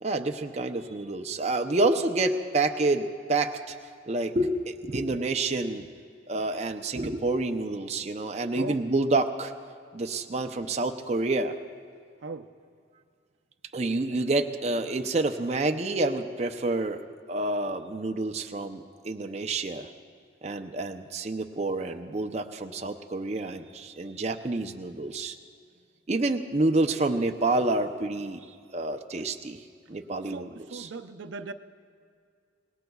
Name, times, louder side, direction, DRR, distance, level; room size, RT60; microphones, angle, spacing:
voice 1, 0.0-3.8 4.1-5.8 6.3-9.5 9.9-11.6 13.7-19.9 20.4-25.3 26.1-28.4 28.7-29.6 29.9-30.9, right 2 dB, 35° right, 5 dB, 0.5 m, -28 dB
voice 2, 30.3-31.5, right 4 dB, 75° right, 7 dB, 0.6 m, -39 dB
26.0 x 19.5 x 2.3 m, 2.2 s
head